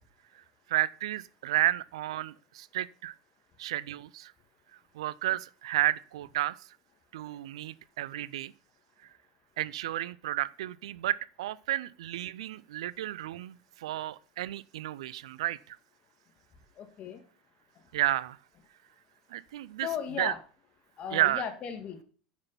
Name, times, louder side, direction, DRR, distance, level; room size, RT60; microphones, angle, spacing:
voice 1, 0.7-3.1 3.6-4.3 4.9-6.6 7.1-8.5 9.6-15.8 17.9-18.4 19.3-19.9 20.2-20.3 21.1-21.4, right 14 dB, 70° right, 0.4 m, -32 dB
voice 2, 16.8-17.2 19.8-20.4 21.0-22.0, left 8 dB, 40° left, 2.1 m, -36 dB
9.7 x 6.1 x 5.7 m
hypercardioid pair, 85°, 3 cm